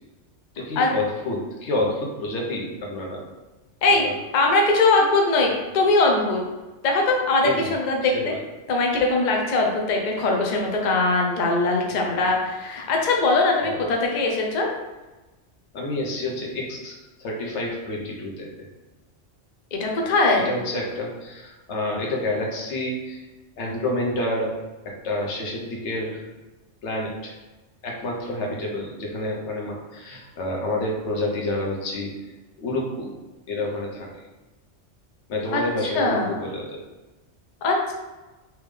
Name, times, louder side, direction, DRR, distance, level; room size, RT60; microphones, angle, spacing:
voice 1, 0.5-3.2 3.9-4.1 7.4-7.7 8.0-8.4 13.6-13.8 14.1-14.2 15.7-18.5 20.4-23.3 23.6-24.5 24.8-26.2 26.8-27.4 27.8-32.1 32.6-33.1 33.5-34.1 35.3-36.8, left 1 dB, 75° left, -1 dB, 1.1 m, -29 dB
voice 2, 4.3-6.4 6.8-8.3 8.7-14.7 19.7-20.5 35.5-35.6 35.9-36.3 37.6-37.9, left 3 dB, 50° left, 0 dB, 0.6 m, -21 dB
3.5 x 3.0 x 3.2 m, 1.2 s
omnidirectional pair, 1.2 m